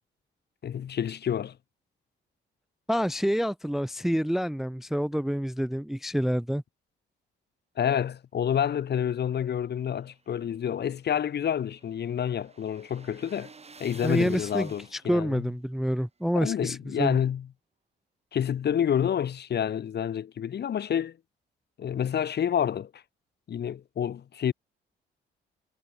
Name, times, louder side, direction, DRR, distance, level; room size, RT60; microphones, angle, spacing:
voice 1, 0.6-1.6 7.8-13.5 13.8-15.5 16.3-17.5 18.3-21.2 21.8-23.0 23.5-24.5, left 9 dB, 55° left, 2.1 m, -28 dB
voice 2, 2.9-6.6 14.0-17.2, equal, ahead, 0.5 m, -28 dB
sound 1, 9.9-15.3, right 4 dB, 30° right, 6.1 m, -52 dB
cardioid pair, 90°, 20 cm